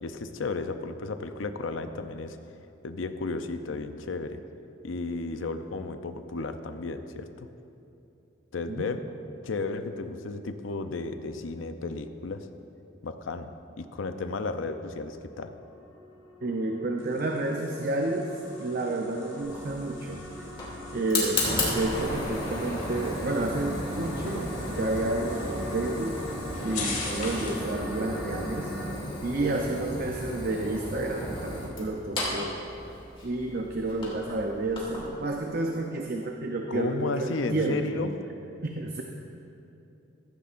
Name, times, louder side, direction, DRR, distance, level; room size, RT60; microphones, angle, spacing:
voice 1, 0.0-2.4 2.8-4.4 4.8-7.3 8.5-9.0 9.4-12.5 13.0-13.5 13.8-15.5 36.7-38.1, left 3 dB, 90° left, 9 dB, 0.6 m, -33 dB
sound 1, 13.7-28.9, equal, 5° right, 1.4 m, -42 dB
voice 2, 16.4-18.3 18.6-20.5 20.9-26.2 26.6-28.7 29.2-32.6 33.2-38.1 38.6-39.0, right 2 dB, 50° right, 2 dB, 0.7 m, -30 dB
sound 2, 17.0-27.7, left 3 dB, 45° left, 2.8 m, -42 dB
Fire, 19.4-35.1, left 2 dB, 30° left, 2.7 m, -34 dB
15.0 x 14.0 x 2.6 m, 2.8 s
head